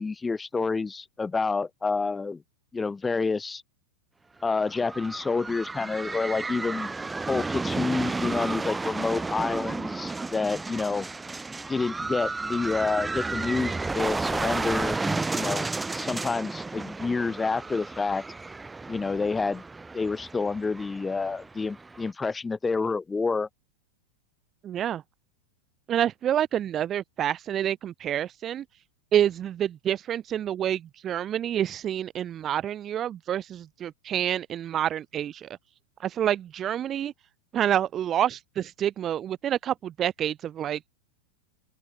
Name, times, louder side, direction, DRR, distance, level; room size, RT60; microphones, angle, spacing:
voice 1, 0.0-2.4 2.7-3.6 4.4-6.9 7.3-11.1 11.7-15.7 15.9-18.2 18.9-19.6 19.9-23.5, left 4 dB, 10° left, 1.4 m, -28 dB
sound 1, 4.5-22.1, right 3 dB, 10° right, 2.5 m, -32 dB
voice 2, 24.6-25.0 25.9-28.6 29.1-35.5 36.0-37.1 37.5-40.9, right 10 dB, 30° right, 0.3 m, -28 dB
open air
figure-of-eight pair, 90°, 0 cm